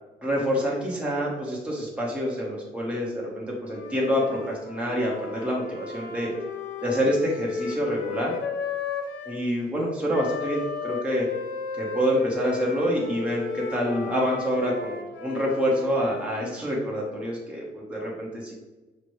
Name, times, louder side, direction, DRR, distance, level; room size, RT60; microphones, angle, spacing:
voice 1, 0.2-6.3 6.8-8.3 9.2-11.3 11.8-18.5, equal, 5° right, -4 dB, 1.1 m, -27 dB
Wind instrument woodwind instrument, 3.6-9.4 10.1-16.6, left 6 dB, 65° left, 0.7 m, -35 dB
6.0 x 2.2 x 3.1 m, 1.1 s
cardioid pair, 90°, 20 cm